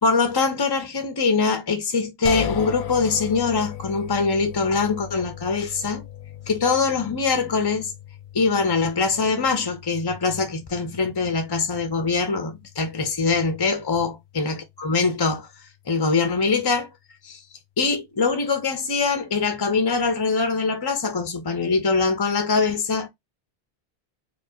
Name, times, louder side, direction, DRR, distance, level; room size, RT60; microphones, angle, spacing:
voice 1, 0.0-6.0 6.5-7.9 8.3-15.5 15.9-16.9 17.2-17.4 17.8-23.1, left 4 dB, 30° left, 0.4 m, -23 dB
sound 1, 2.2-15.3, left 9 dB, 85° left, 0.9 m, -38 dB
4.4 x 2.4 x 2.6 m
omnidirectional pair, 1.1 m